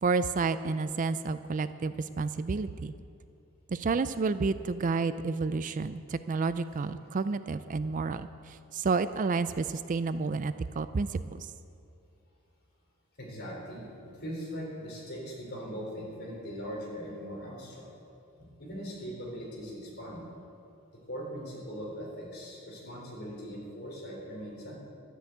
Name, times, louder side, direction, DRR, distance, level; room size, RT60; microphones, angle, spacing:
voice 1, 0.0-2.9 3.7-11.5, right 4 dB, 35° right, 13 dB, 0.4 m, -30 dB
voice 2, 13.2-17.9 18.4-20.2 21.1-24.8, equal, 50° left, -3 dB, 4.3 m, -40 dB
12.5 x 10.0 x 8.1 m, 2.6 s
head